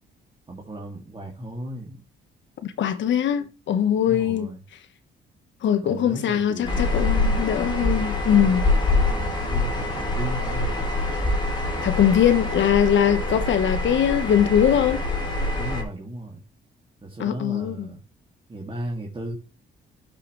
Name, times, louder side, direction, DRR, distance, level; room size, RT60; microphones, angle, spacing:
voice 1, 0.5-2.0 3.9-4.6 5.8-7.0 8.3-10.9 15.6-16.4 17.0-18.0 18.5-19.3, right 1 dB, 25° right, 2.5 m, -36 dB
voice 2, 2.6-4.5 5.6-8.7 11.8-15.0 17.2-17.9, left 9 dB, 70° left, 1.4 m, -21 dB
sound 1, 6.6-15.8, left 2 dB, 25° left, 3.4 m, -25 dB
12.0 x 6.6 x 3.3 m
cardioid pair, 90°, 20 cm